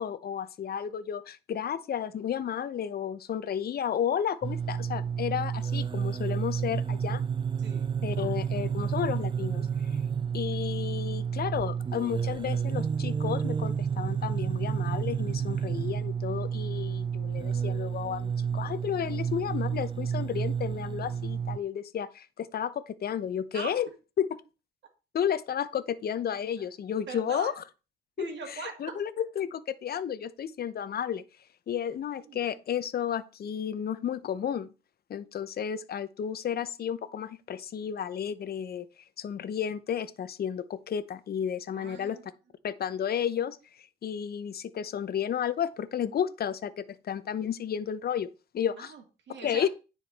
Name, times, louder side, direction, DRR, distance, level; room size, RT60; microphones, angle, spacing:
voice 1, 0.0-7.2 8.0-10.0 10.3-23.9 24.2-24.4 25.1-27.6 28.2-31.2 31.7-34.7 35.1-38.9 39.2-42.2 42.6-48.3 48.5-48.9 49.4-49.7, left 9 dB, 50° left, 0.8 m, -32 dB
sound 1, 4.4-21.6, right 7 dB, 25° right, 0.4 m, -30 dB
voice 2, 7.6-7.9 23.5-23.7 27.1-27.5 28.2-29.0 32.3-32.5 41.7-42.2 48.8-49.7, right 4 dB, 65° right, 2.3 m, -40 dB
9.8 x 4.8 x 4.1 m
cardioid pair, 90°, 20 cm